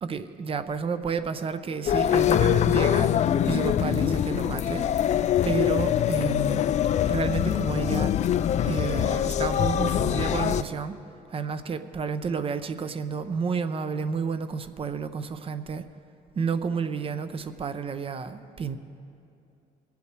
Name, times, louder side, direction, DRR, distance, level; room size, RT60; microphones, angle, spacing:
voice 1, 0.0-4.9 5.4-6.7 7.1-8.1 8.6-10.9 11.3-15.8 16.4-18.8, right 5 dB, 35° right, 11 dB, 0.6 m, -31 dB
sound 1, 1.9-10.6, left 10 dB, 45° left, 0.4 m, -24 dB
21.5 x 8.3 x 4.7 m, 2.6 s
cardioid pair, 110°, 17 cm